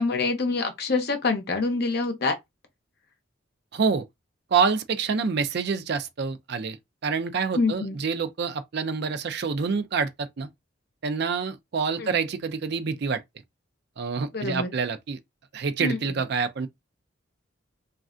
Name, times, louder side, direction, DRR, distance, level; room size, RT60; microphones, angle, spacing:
voice 1, 0.0-2.4 7.5-8.0 12.0-12.1 14.3-14.7 15.8-16.2, left 3 dB, 55° left, 0.7 m, -26 dB
voice 2, 3.7-4.1 4.5-6.8 7.0-10.5 11.0-13.2 14.0-15.2 15.5-16.7, right 5 dB, 55° right, 0.4 m, -27 dB
3.2 x 2.4 x 2.5 m
head